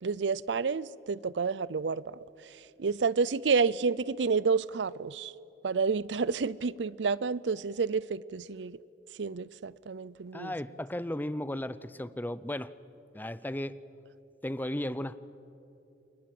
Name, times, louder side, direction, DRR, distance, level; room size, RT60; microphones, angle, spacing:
voice 1, 0.0-2.2 2.8-5.3 5.6-8.8 9.2-10.5, right 5 dB, 85° right, 0.5 m, -29 dB
voice 2, 10.3-12.7 13.1-13.8 14.4-15.2, left 1 dB, 10° left, 0.6 m, -35 dB
29.0 x 24.0 x 7.8 m
head